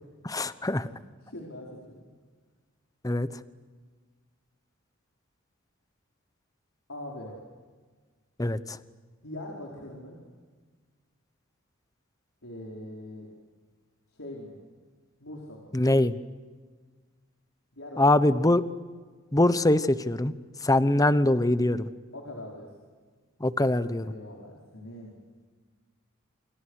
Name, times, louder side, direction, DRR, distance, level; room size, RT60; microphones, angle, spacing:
voice 1, 0.2-0.9 3.0-3.3 8.4-8.6 15.7-16.1 18.0-18.6 19.3-20.3 20.6-21.9 23.4-24.0, left 1 dB, 15° left, 13 dB, 1.0 m, -23 dB
voice 2, 1.2-2.1 6.9-7.4 9.2-10.2 12.4-13.3 14.1-14.6 15.2-15.7 17.7-18.4 22.1-22.7 24.0-25.1, left 1 dB, 75° left, -2 dB, 4.8 m, -42 dB
28.5 x 28.0 x 6.5 m, 1.5 s
head